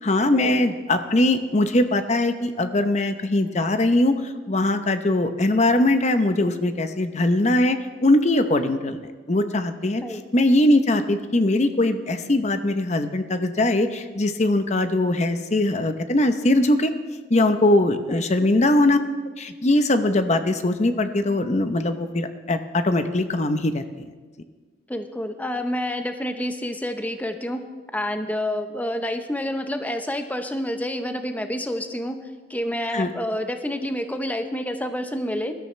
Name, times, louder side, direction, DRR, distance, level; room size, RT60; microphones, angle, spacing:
voice 1, 0.0-9.0 9.3-16.9 17.3-19.0 19.4-23.8 32.9-33.1, left 1 dB, 40° left, 9 dB, 0.8 m, -21 dB
voice 2, 24.9-27.6 27.9-32.2 32.5-35.5, left 1 dB, 10° left, 7 dB, 0.7 m, -28 dB
20.5 x 13.0 x 3.2 m, 1.4 s
head